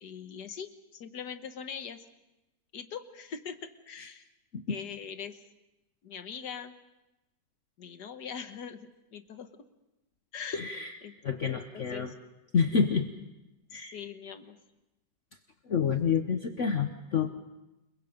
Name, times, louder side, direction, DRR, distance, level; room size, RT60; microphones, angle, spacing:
voice 1, 0.0-2.0 2.7-4.2 4.7-5.4 6.0-6.7 7.8-8.8 9.1-9.5 10.3-10.7 11.0-12.1 13.7-14.6, left 7 dB, 65° left, 9 dB, 1.8 m, -42 dB
voice 2, 10.5-11.0 11.2-12.1 12.5-13.1 13.7-14.0 15.6-17.3, left 6 dB, 50° left, 6 dB, 1.2 m, -28 dB
29.5 x 22.5 x 5.2 m, 0.96 s
omnidirectional pair, 1.9 m